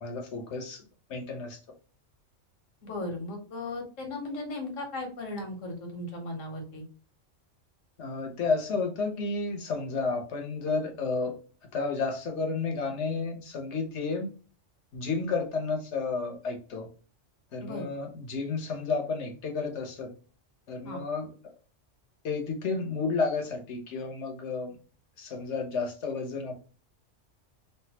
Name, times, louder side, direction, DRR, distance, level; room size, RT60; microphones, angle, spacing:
voice 1, 0.0-0.8 1.1-1.6 8.0-11.3 11.7-14.3 14.9-16.9 17.5-20.1 20.7-21.3 22.2-24.8 25.2-26.6, left 4 dB, 65° left, 3 dB, 1.2 m, -31 dB
voice 2, 2.8-6.8 17.6-17.9 20.8-21.0, left 2 dB, 85° left, 2 dB, 1.5 m, -36 dB
3.3 x 2.6 x 2.8 m, 0.37 s
omnidirectional pair, 1.3 m